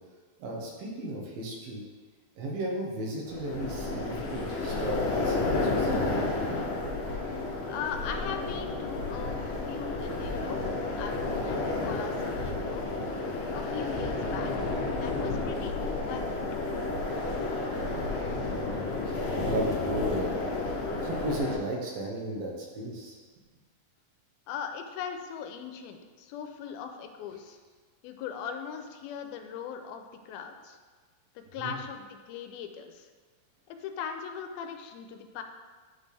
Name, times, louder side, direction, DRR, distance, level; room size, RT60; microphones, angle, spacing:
voice 1, 0.4-1.8 2.4-6.0 17.8-18.1 18.4-20.4 21.0-23.2 31.6-31.8, right 1 dB, 75° right, -2 dB, 2.7 m, -35 dB
sound 1, 3.3-21.6, left 2 dB, 75° left, 2.1 m, -31 dB
voice 2, 7.7-12.9 13.5-16.4 24.5-27.6 28.0-30.8 31.4-33.1 33.7-35.4, left 7 dB, 90° left, 6 dB, 2.4 m, -39 dB
10.5 x 4.2 x 3.4 m, 1.5 s
omnidirectional pair, 4.2 m